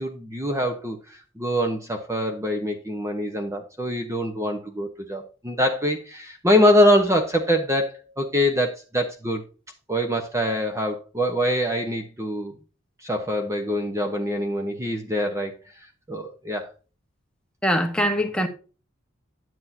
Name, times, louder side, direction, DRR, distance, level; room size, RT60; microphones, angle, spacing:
voice 1, 0.0-9.4 9.9-12.5 13.0-15.5 16.1-16.7, equal, 15° right, 1.0 m, -24 dB
voice 2, 17.6-18.5, equal, 5° left, 1.2 m, -22 dB
10.5 x 7.5 x 2.7 m
head